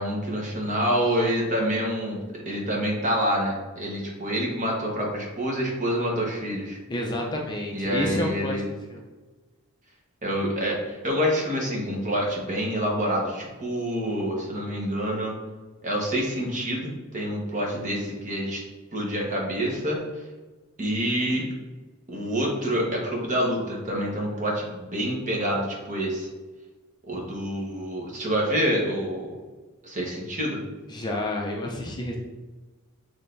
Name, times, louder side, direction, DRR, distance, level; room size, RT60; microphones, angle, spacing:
voice 1, 0.0-2.2 2.5-6.8 7.7-8.6 10.2-15.3 15.8-18.6 18.9-20.0 20.8-21.4 22.1-26.3 27.1-29.3 29.8-30.6, equal, 35° right, -1 dB, 1.0 m, -27 dB
voice 2, 6.9-8.6 8.9-9.0 30.9-32.2, left 1 dB, 20° left, 0 dB, 0.5 m, -29 dB
6.3 x 3.2 x 2.6 m, 1.2 s
head